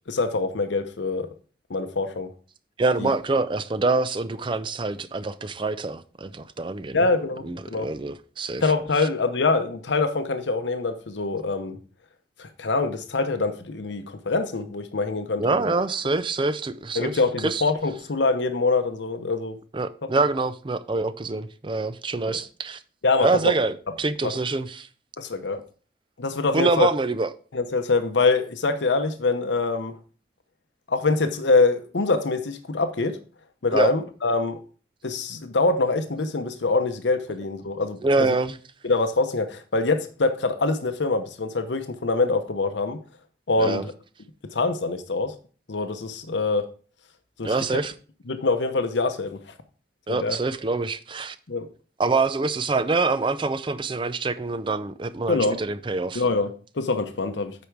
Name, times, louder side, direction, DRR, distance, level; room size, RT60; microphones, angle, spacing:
voice 1, 0.1-1.3 1.7-2.3 3.0-3.1 6.9-7.9 8.6-11.8 12.4-15.6 17.0-19.6 22.3-22.4 23.0-23.5 24.2-24.3 25.2-25.6 26.2-26.9 27.5-29.9 30.9-33.2 33.6-34.6 35.0-38.3 38.8-43.0 43.5-43.8 44.5-45.3 45.7-46.7 47.4-47.5 48.3-49.4 50.1-50.4 51.5-51.7 55.3-55.6 56.1-57.5, left 3 dB, 85° left, 0.8 m, -24 dB
voice 2, 2.8-7.1 7.4-8.7 9.0-9.1 15.4-17.7 19.7-22.8 23.2-24.9 26.5-27.3 33.7-33.9 38.0-38.6 43.6-43.9 47.4-47.9 50.1-51.4 52.0-56.2, right 3 dB, 30° right, 0.5 m, -25 dB
8.2 x 5.1 x 4.6 m
head